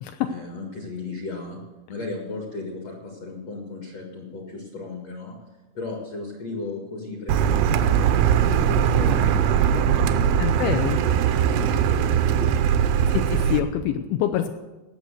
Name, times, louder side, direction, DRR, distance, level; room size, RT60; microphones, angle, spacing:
voice 1, 0.3-1.6 1.9-5.4 5.7-12.5 13.0-13.2, left 3 dB, 60° left, 1 dB, 1.7 m, -36 dB
Car, 7.3-13.6, right 8 dB, 90° right, 3.2 m, -20 dB
voice 2, 10.4-11.0 13.1-14.5, left 11 dB, 85° left, 7 dB, 2.7 m, -25 dB
17.5 x 7.0 x 6.5 m, 1.1 s
omnidirectional pair, 5.8 m